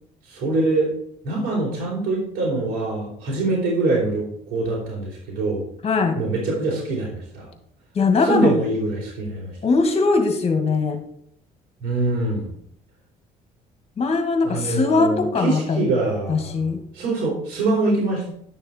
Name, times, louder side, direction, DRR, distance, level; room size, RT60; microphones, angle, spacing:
voice 1, 0.3-0.9 1.2-5.7 6.2-7.5 8.2-9.6 11.8-12.5 14.4-18.3, right 2 dB, 80° right, -5 dB, 4.2 m, -24 dB
voice 2, 5.8-6.2 8.0-8.5 9.6-11.0 14.0-15.9 16.3-16.8, left 4 dB, 35° left, 6 dB, 2.1 m, -20 dB
11.0 x 6.8 x 4.5 m, 0.68 s
cardioid pair, 110°, 17 cm